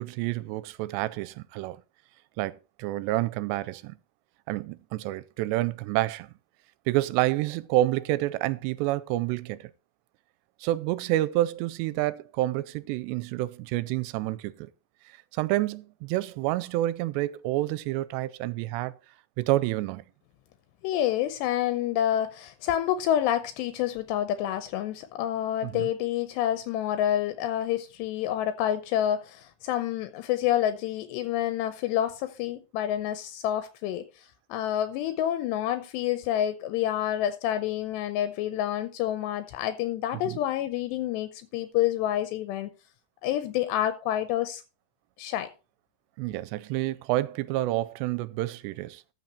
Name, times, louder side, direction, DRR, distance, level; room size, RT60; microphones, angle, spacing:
voice 1, 0.0-1.8 2.4-4.0 4.5-6.3 6.9-9.7 10.6-14.7 15.3-18.9 19.4-20.0 25.6-25.9 40.3-40.4 46.2-49.1, right 16 dB, 85° right, 2.8 m, -28 dB
voice 2, 20.8-34.1 34.5-42.7 43.2-44.6 45.2-45.5, left 11 dB, 85° left, 2.9 m, -28 dB
13.5 x 6.0 x 4.3 m
omnidirectional pair, 4.9 m